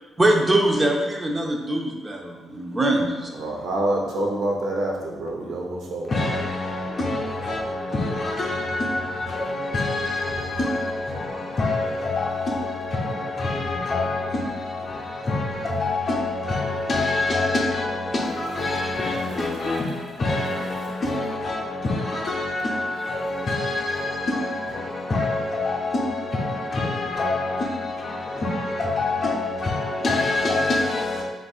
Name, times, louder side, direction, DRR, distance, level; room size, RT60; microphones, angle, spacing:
voice 1, 0.2-3.3, right 1 dB, 20° right, 0.6 m, -22 dB
voice 2, 3.3-6.1 19.2-19.4 20.7-21.0, right 1 dB, 70° right, 0.9 m, -27 dB
voice 3, 6.1-31.2, left 2 dB, 40° left, 0.7 m, -26 dB
6.3 x 2.5 x 2.4 m
cardioid pair, 130°, 0 cm